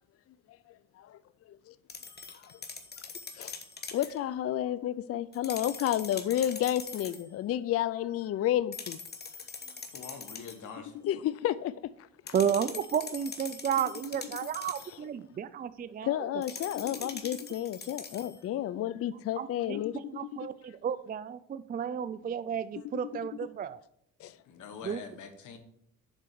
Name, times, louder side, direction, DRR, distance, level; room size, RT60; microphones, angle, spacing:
sound 1, 1.9-4.2 5.3-7.3 8.7-10.7 12.3-15.0 16.4-18.4, left 4 dB, 35° left, 1.2 m, -43 dB
voice 1, 3.9-9.0 11.0-11.7 16.0-20.0 24.2-24.4, left 12 dB, 50° left, 0.4 m, -31 dB
voice 2, 9.9-10.9 24.4-25.6, left 6 dB, 75° left, 1.5 m, -44 dB
voice 3, 12.3-16.3 16.8-17.1 19.1-23.8 24.8-25.0, right 8 dB, 30° right, 0.4 m, -33 dB
7.3 x 4.3 x 6.8 m
cardioid pair, 90°, 30 cm